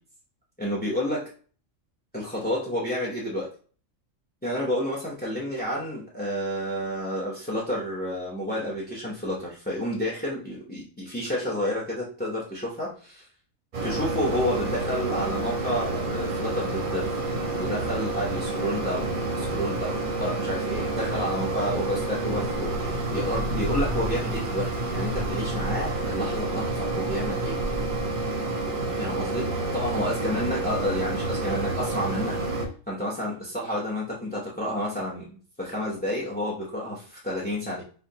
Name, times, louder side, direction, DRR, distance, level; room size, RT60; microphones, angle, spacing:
voice 1, 0.6-1.3 2.1-3.5 4.4-13.3 13.8-17.1 17.5-27.6 29.0-37.8, equal, 10° left, -4 dB, 0.6 m, -30 dB
Mechanisms, 13.7-32.7, right 2 dB, 45° right, 0.8 m, -29 dB
5.2 x 2.6 x 2.8 m, 0.41 s
omnidirectional pair, 1.4 m